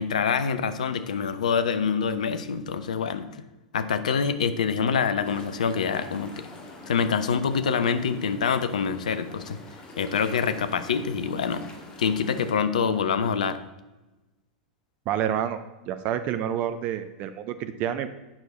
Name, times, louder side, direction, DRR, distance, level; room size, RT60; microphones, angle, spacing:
voice 1, 0.0-3.3 3.7-6.5 6.9-9.6 10.0-11.6 12.0-13.6, left 6 dB, 70° left, 11 dB, 0.6 m, -26 dB
sound 1, 5.2-12.5, left 2 dB, 25° left, 1.6 m, -45 dB
voice 2, 15.1-18.1, right 10 dB, 40° right, 10 dB, 0.6 m, -29 dB
8.9 x 6.4 x 4.1 m, 1.1 s
figure-of-eight pair, 90°, 4 cm